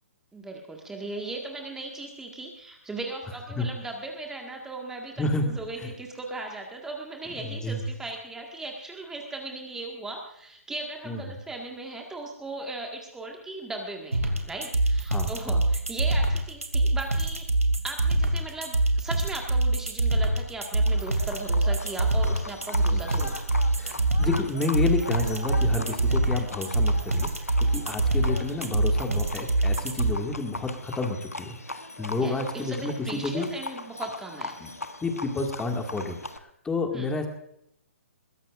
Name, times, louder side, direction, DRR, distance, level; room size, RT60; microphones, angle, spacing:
voice 1, 0.3-17.5 17.8-23.4 32.2-34.6 36.9-37.1, right 2 dB, 5° right, 1 dB, 1.8 m, -38 dB
voice 2, 5.2-5.5 5.8-5.9 7.4-7.8 11.1-11.2 15.1-15.6 22.9-23.2 23.8-27.3 27.6-33.5 34.6-34.7 35.0-37.3, left 3 dB, 10° left, 3 dB, 2.1 m, -30 dB
sound 1, 14.1-30.1, right 2 dB, 85° right, 2.6 m, -24 dB
Livestock farm animals working animals, 20.9-36.4, left 2 dB, 90° left, 1.1 m, -39 dB
21.5 x 16.5 x 2.6 m, 0.75 s
figure-of-eight pair, 130°, 8 cm